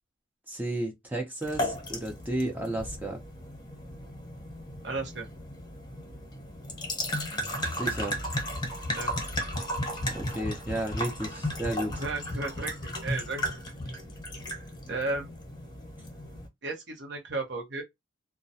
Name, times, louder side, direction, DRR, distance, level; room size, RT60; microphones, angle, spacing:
voice 1, 0.5-3.2 7.8-8.2 10.1-11.9, right 1 dB, 10° right, 0.5 m, -32 dB
sound 1, 1.4-16.5, equal, 25° left, 0.9 m, -35 dB
voice 2, 4.8-5.3 8.9-9.1 11.9-13.4 14.9-15.3 16.6-17.8, right 3 dB, 65° right, 0.9 m, -34 dB
2.3 x 2.1 x 2.6 m
head